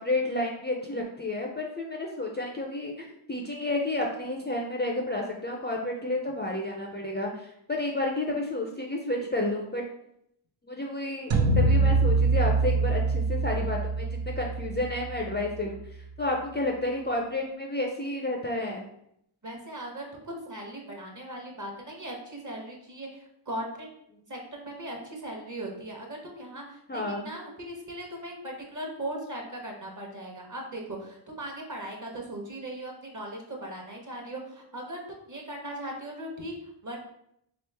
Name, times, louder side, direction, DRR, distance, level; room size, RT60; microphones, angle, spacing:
voice 1, 0.0-9.8 10.6-14.1 14.4-15.8 16.2-18.8 26.9-27.3, left 2 dB, 25° left, 0 dB, 0.4 m, -31 dB
sound 1, 11.3-15.6, right 3 dB, 70° right, 0.6 m, -25 dB
voice 2, 19.4-23.9 24.3-36.5 36.8-37.0, right 1 dB, 40° right, 0 dB, 1.0 m, -38 dB
3.5 x 3.1 x 3.3 m, 0.75 s
wide cardioid pair, 100°, 48 cm